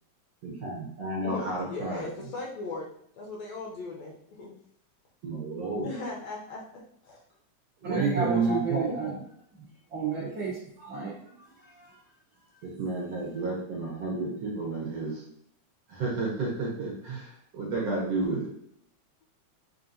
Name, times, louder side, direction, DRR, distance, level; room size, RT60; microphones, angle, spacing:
voice 1, 0.4-2.0 5.2-5.9 7.8-9.2 12.6-15.2 15.9-18.5, right 3 dB, 65° right, -4 dB, 1.7 m, -31 dB
voice 2, 1.2-4.5 5.8-7.2, left 3 dB, 75° left, -2 dB, 1.7 m, -38 dB
voice 3, 7.8-9.1 9.9-11.1 11.8-11.9, right 5 dB, 80° right, -6 dB, 1.1 m, -32 dB
4.9 x 2.5 x 2.6 m, 0.70 s
omnidirectional pair, 3.4 m